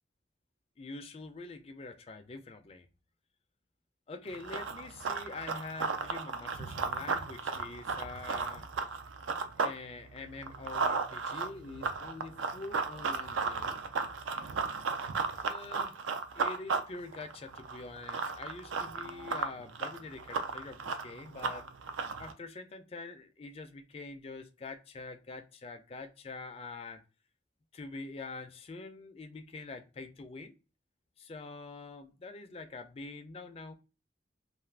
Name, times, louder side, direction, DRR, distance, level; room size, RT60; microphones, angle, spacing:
voice 1, 0.8-2.9 4.1-8.7 9.6-13.8 15.4-16.0 16.3-21.7 22.2-27.0 27.7-30.5 31.2-33.7, left 3 dB, 30° left, 0.3 m, -45 dB
Run, 4.3-9.8 10.1-22.3, right 4 dB, 85° right, 0.4 m, -35 dB
2.4 x 2.4 x 3.2 m
head